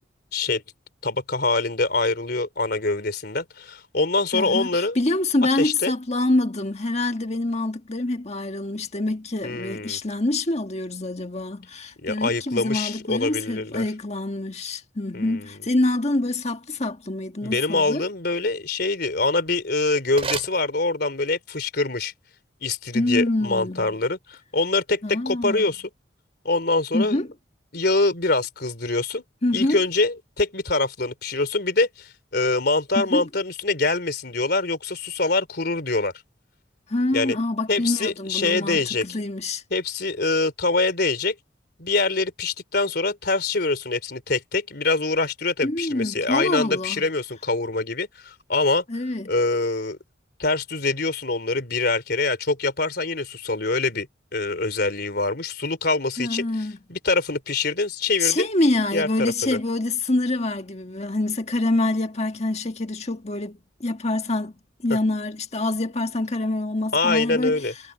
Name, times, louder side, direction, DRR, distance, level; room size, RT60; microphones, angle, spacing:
voice 1, 0.3-0.6 1.0-5.0 5.6-5.9 9.4-10.0 12.0-13.8 15.1-15.5 17.4-22.1 22.6-25.8 26.4-27.2 27.7-29.2 29.5-36.1 37.1-37.4 37.7-39.1 39.7-41.4 41.8-48.8 49.3-50.0 50.4-54.1 54.3-56.5 56.9-58.5 58.9-59.6 66.9-67.7, left 3 dB, 60° left, 3.7 m, -24 dB
voice 2, 4.3-18.0 22.9-24.0 25.0-25.7 26.9-27.3 29.4-29.8 33.0-33.3 36.9-39.6 45.6-47.0 48.9-49.3 56.2-56.8 58.2-64.6 64.8-67.6, left 2 dB, 35° left, 1.7 m, -26 dB
sound 1, 20.0-21.4, right 5 dB, 35° right, 4.7 m, -35 dB
head